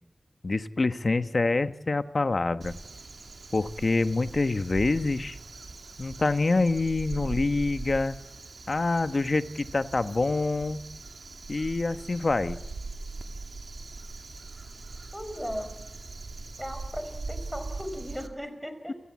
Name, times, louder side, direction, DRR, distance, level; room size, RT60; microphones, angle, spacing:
voice 1, 0.4-2.7 3.5-5.4 6.0-8.2 8.7-10.8 11.5-12.6, left 3 dB, 50° left, 11 dB, 1.2 m, -26 dB
Crow, 2.6-18.3, right 3 dB, 75° right, 2.2 m, -41 dB
voice 2, 15.1-15.7 16.6-18.9, equal, ahead, 8 dB, 5.2 m, -37 dB
29.5 x 17.0 x 8.6 m, 0.98 s
wide cardioid pair, 95°, 0 cm